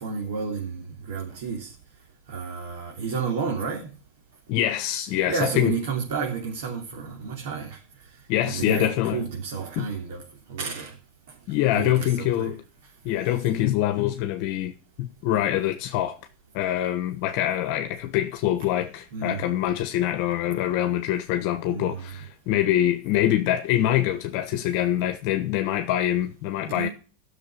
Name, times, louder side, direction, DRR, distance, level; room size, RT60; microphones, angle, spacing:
voice 1, 0.0-1.7 2.3-3.9 5.3-7.8 8.4-10.2 10.5-10.9 11.7-12.5 19.1-19.5 21.7-22.2 26.7-26.9, right 5 dB, 75° right, 3.3 m, -31 dB
voice 2, 4.5-5.8 8.3-9.2 9.8-9.9 11.5-12.6 13.0-14.7 15.0-16.2 16.5-26.9, left 12 dB, 55° left, 1.1 m, -24 dB
12.0 x 6.7 x 6.8 m
supercardioid pair, 145°, 0 cm